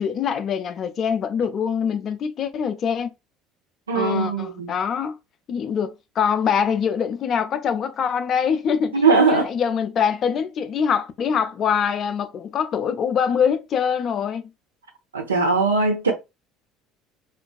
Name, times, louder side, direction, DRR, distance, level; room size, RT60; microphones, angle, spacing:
voice 1, 0.0-3.1 3.9-5.2 5.5-14.5, left 7 dB, 45° left, 0.4 m, -24 dB
voice 2, 3.9-4.7 8.9-9.5 15.1-16.1, right 4 dB, 85° right, 0.6 m, -20 dB
2.4 x 2.2 x 2.3 m
figure-of-eight pair, 65°, 0 cm